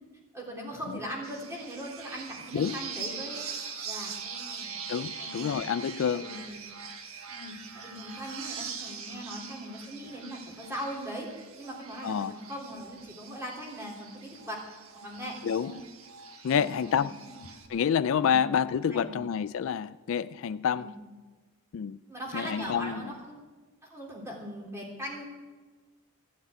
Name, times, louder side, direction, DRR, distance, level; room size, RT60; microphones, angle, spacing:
voice 1, 0.3-3.4 3.8-4.8 5.2-5.5 6.2-6.6 7.3-11.3 11.6-14.6 15.0-15.8 16.4-17.4 18.2-18.4 18.8-19.3 20.8-20.9 22.1-23.4 23.9-25.2, equal, 10° right, 3.4 m, -40 dB
sound 1, 1.2-17.7, right 5 dB, 65° right, 1.4 m, -42 dB
voice 2, 4.9-6.3 12.0-12.3 15.4-15.7 16.4-17.1 17.7-20.9 21.7-22.0 22.3-23.0, left 7 dB, 60° left, 0.3 m, -28 dB
15.0 x 7.4 x 8.9 m
head